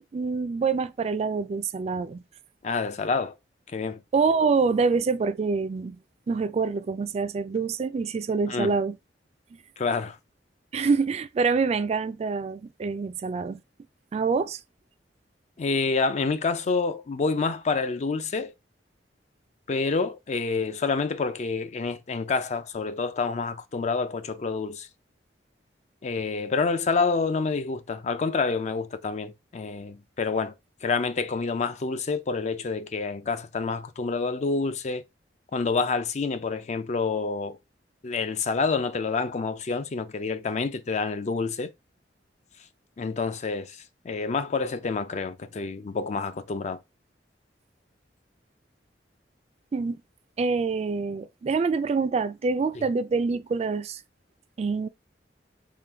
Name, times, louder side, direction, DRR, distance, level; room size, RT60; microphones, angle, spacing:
voice 1, 0.1-2.2 4.1-6.0 6.3-9.0 10.7-13.6 14.1-14.6 49.7-50.0 50.4-54.0 54.6-54.9, right 4 dB, 35° right, 0.3 m, -26 dB
voice 2, 2.6-3.3 3.7-4.0 8.5-8.7 9.8-10.2 15.6-18.5 19.7-24.9 26.0-30.5 30.8-35.0 35.5-37.6 38.0-41.7 43.0-43.8 44.0-46.8, left 4 dB, 40° left, 0.4 m, -28 dB
3.7 x 2.2 x 4.4 m
head